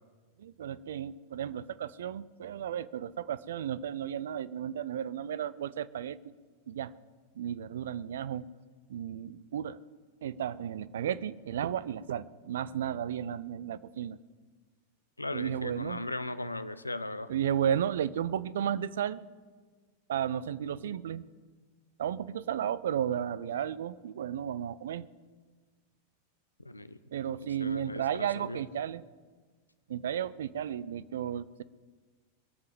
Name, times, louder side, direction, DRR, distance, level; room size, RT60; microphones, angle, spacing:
voice 1, 0.4-6.3 6.7-6.9 7.4-8.5 8.9-9.8 10.2-14.2 15.3-16.0 17.3-19.2 20.1-21.2 22.0-25.1 27.1-29.0 29.9-31.6, right 9 dB, 60° right, 17 dB, 0.5 m, -33 dB
voice 2, 15.2-17.3 26.6-27.0 27.6-28.6, left 2 dB, 85° left, 13 dB, 0.7 m, -37 dB
22.0 x 7.7 x 7.4 m, 1.4 s
figure-of-eight pair, 90°, 0 cm